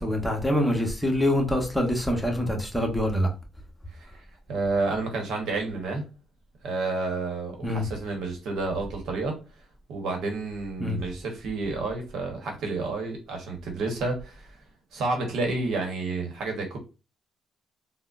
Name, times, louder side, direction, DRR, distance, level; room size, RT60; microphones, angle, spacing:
voice 1, 0.0-3.3 7.6-7.8 10.8-11.0, left 1 dB, 5° left, 0.9 m, -25 dB
voice 2, 4.5-6.0 6.6-9.4 9.9-14.6 14.9-16.8, right 3 dB, 75° right, 0.9 m, -30 dB
3.7 x 2.0 x 2.4 m
cardioid pair, 90°, 0 cm